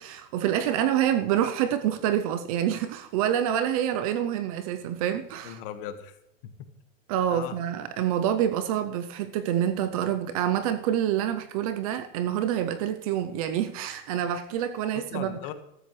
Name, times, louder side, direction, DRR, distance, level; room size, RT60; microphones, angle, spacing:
voice 1, 0.0-5.6 7.1-15.4, right 10 dB, 30° right, 0.5 m, -27 dB
voice 2, 5.4-6.2 6.4-6.7 7.3-7.6 14.9-15.5, left 10 dB, 45° left, 1.5 m, -38 dB
14.5 x 13.0 x 3.2 m
supercardioid pair, 160°, 38 cm